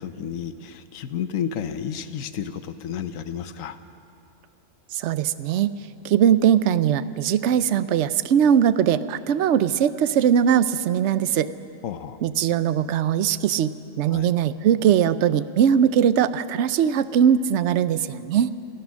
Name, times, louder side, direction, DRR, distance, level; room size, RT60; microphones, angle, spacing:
voice 1, 0.0-3.8 11.8-12.2 14.1-14.3, left 8 dB, 75° left, 11 dB, 1.2 m, -31 dB
voice 2, 4.9-5.7 6.0-11.5 12.2-18.5, right 9 dB, 65° right, 14 dB, 0.9 m, -20 dB
27.5 x 18.0 x 6.3 m, 2.6 s
omnidirectional pair, 1.4 m